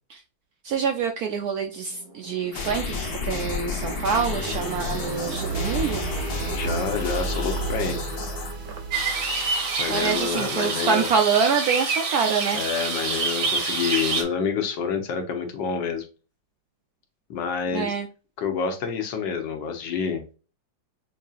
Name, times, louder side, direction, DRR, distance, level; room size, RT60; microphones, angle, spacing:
voice 1, 0.6-6.0 9.9-12.6 17.7-18.1, right 6 dB, 75° right, 4 dB, 0.9 m, -26 dB
sound 1, 1.7-10.4, right 3 dB, 90° right, 1.9 m, -33 dB
sound 2, 2.5-8.5, left 4 dB, 55° left, 1.5 m, -32 dB
voice 2, 6.5-8.0 9.8-11.1 12.5-16.1 17.3-17.9 18.4-20.2, left 6 dB, 70° left, 5 dB, 1.5 m, -28 dB
sound 3, 8.9-14.2, right 4 dB, 55° right, 1.1 m, -27 dB
5.8 x 2.7 x 2.3 m, 0.34 s
omnidirectional pair, 2.1 m